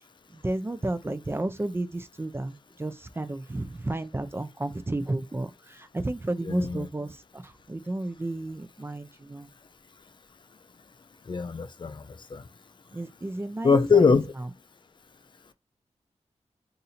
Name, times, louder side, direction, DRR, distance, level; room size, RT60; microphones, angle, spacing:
voice 1, 0.3-9.5 12.9-14.1 14.4-14.5, right 2 dB, 20° right, 0.5 m, -32 dB
voice 2, 6.4-6.9 11.3-12.0 12.3-12.4 13.6-14.2, left 5 dB, 40° left, 0.5 m, -22 dB
2.6 x 2.6 x 4.2 m
wide cardioid pair, 75°, 12 cm